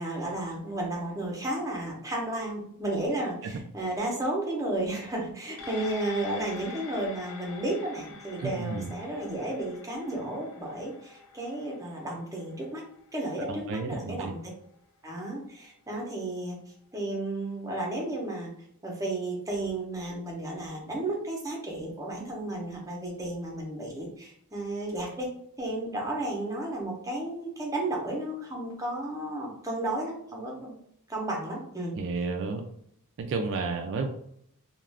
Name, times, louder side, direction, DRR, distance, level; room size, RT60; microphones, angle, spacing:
voice 1, 0.0-12.8 13.1-14.4 15.0-16.6 16.9-18.5 18.8-25.3 25.6-30.8 31.1-31.9, right 1 dB, 15° right, -1 dB, 0.6 m, -33 dB
sound 1, 5.6-14.3 14.7-14.8, left 4 dB, 70° left, 0.5 m, -46 dB
voice 2, 8.4-8.9 13.5-14.3 31.9-32.6 33.2-34.1, right 4 dB, 60° right, 4 dB, 0.3 m, -31 dB
2.4 x 2.2 x 3.3 m, 0.70 s
head